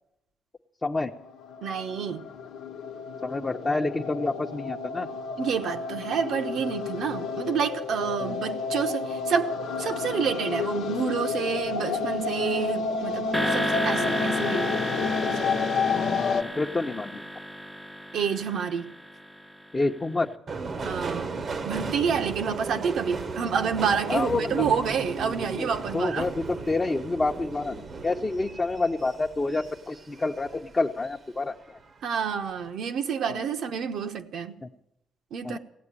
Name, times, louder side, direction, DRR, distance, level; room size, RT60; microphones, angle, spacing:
voice 1, 0.8-1.1 3.2-5.1 16.1-17.2 19.7-20.3 22.5-22.6 24.1-24.6 25.6-31.8 33.3-33.5 34.6-34.7 35.4-35.6, left 3 dB, 25° left, 0.9 m, -28 dB
sound 1, 0.9-16.4, left 4 dB, 85° left, 1.0 m, -30 dB
voice 2, 1.6-2.3 5.4-15.5 18.1-18.9 20.8-21.4 21.6-26.3 32.0-34.6 35.3-35.6, right 7 dB, 70° right, 1.1 m, -29 dB
sound 2, 13.3-19.7, equal, 5° right, 0.6 m, -32 dB
Subway metro underground, 20.5-31.2 31.5-32.3 32.5-32.7, right 4 dB, 45° right, 0.9 m, -36 dB
16.5 x 8.5 x 9.9 m
cardioid pair, 90°, 0 cm